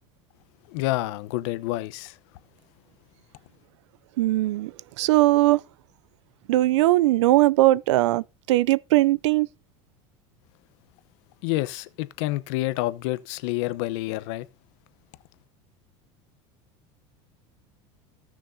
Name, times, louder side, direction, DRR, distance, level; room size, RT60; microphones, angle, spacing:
voice 1, 0.7-2.2 11.4-14.5, left 17 dB, 75° left, 0.9 m, -28 dB
voice 2, 4.2-5.6 6.5-9.5, right 17 dB, 85° right, 0.5 m, -20 dB
18.0 x 6.3 x 2.7 m
supercardioid pair, 100°, 15 cm